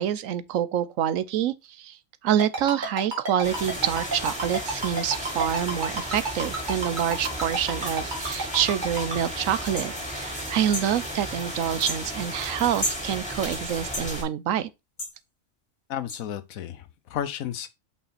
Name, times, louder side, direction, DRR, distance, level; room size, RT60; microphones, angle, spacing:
voice 1, 0.0-2.0 2.2-14.7, right 10 dB, 75° right, 1.1 m, -27 dB
Ringtone, 2.4-9.2, right 2 dB, 35° right, 2.2 m, -29 dB
sound 1, 3.4-14.2, equal, 5° left, 3.2 m, -34 dB
sound 2, 9.8-9.9 10.7-10.9 11.8-12.0 12.8-13.0 13.9-14.1 15.0-15.1 16.1-16.2, left 1 dB, 30° left, 2.4 m, -30 dB
voice 2, 15.9-17.7, left 10 dB, 85° left, 1.2 m, -33 dB
5.6 x 5.6 x 4.2 m
omnidirectional pair, 1.4 m